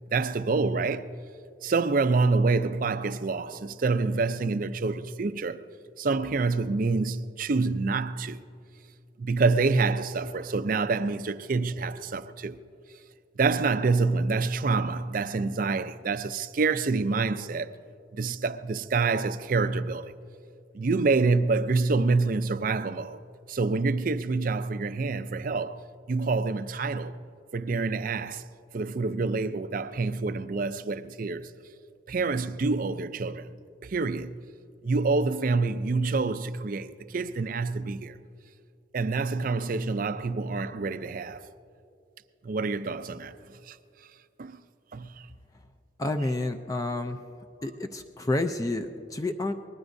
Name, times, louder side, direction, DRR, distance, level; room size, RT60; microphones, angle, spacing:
voice 1, 0.1-1.1 1.6-5.6 6.0-8.4 9.2-12.6 13.4-17.8 18.1-20.1 20.7-23.2 23.5-25.8 26.1-27.2 27.5-28.5 28.7-31.5 32.1-33.5 33.8-34.3 34.8-38.1 38.9-41.4 42.4-43.3 43.7-43.8 44.4-44.6 44.9-45.3, right 3 dB, 45° right, 0.4 m, -27 dB
voice 2, 46.0-47.2 47.6-49.5, left 2 dB, 20° left, 0.4 m, -29 dB
23.5 x 19.5 x 2.6 m
head